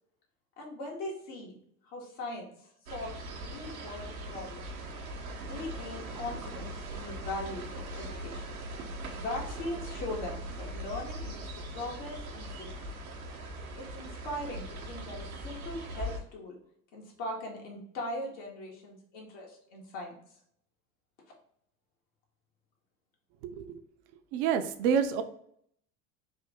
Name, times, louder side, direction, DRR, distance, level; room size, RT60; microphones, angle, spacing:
voice 1, 0.6-1.6 1.8-4.6 5.4-8.6 9.1-12.9 13.7-16.5 16.9-20.1, left 1 dB, 65° left, -1 dB, 1.5 m, -40 dB
sound 1, 2.9-16.2, right 1 dB, 90° right, 0.8 m, -40 dB
voice 2, 23.4-23.8 24.3-25.2, right 7 dB, 60° right, 9 dB, 0.6 m, -28 dB
3.5 x 2.6 x 3.5 m, 0.69 s
hypercardioid pair, 75°, 41 cm